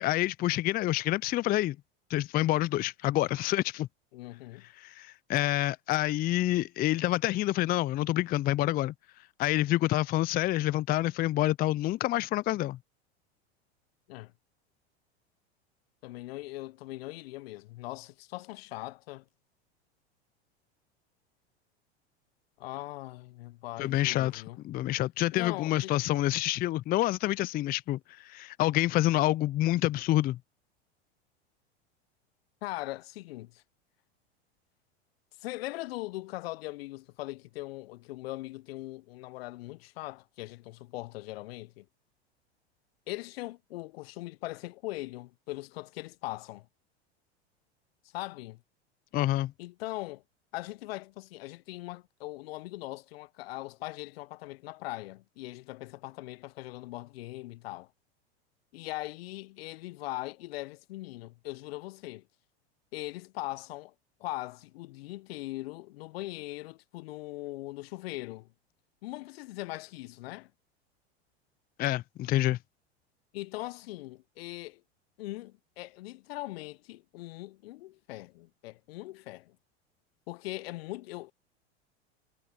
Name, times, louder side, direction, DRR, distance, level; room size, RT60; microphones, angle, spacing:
voice 1, 0.0-1.8 2.1-3.9 4.8-8.9 9.4-12.8 23.8-30.4 49.1-49.5 71.8-72.6, left 15 dB, 30° left, 0.5 m, -27 dB
voice 2, 4.1-4.7 14.1-14.3 16.0-19.2 22.6-24.6 25.3-26.0 32.6-33.6 35.4-41.9 43.1-46.7 48.1-48.6 49.6-50.2 50.5-57.9 58.7-62.2 62.9-63.9 64.2-68.5 69.0-70.5 73.3-74.8 75.2-79.6 80.3-81.3, left 19 dB, 65° left, 0.7 m, -40 dB
hypercardioid pair, 90°, 33 cm